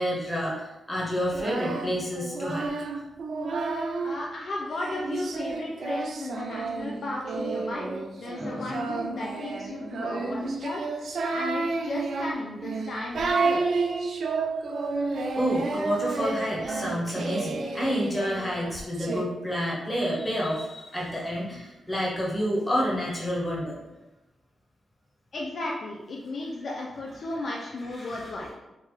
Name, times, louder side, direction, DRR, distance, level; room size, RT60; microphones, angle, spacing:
voice 1, 0.0-2.7 8.4-8.8 15.3-23.8 28.0-28.2, equal, 20° left, -5 dB, 1.5 m, -29 dB
Singing, 1.2-4.2 4.7-19.2, right 3 dB, 70° right, 0.4 m, -31 dB
voice 2, 4.0-7.9 8.1-10.8 11.3-13.8 25.3-28.5, left 2 dB, 60° left, -2 dB, 0.5 m, -35 dB
3.6 x 2.7 x 3.3 m, 1.0 s
cardioid pair, 65°, 0 cm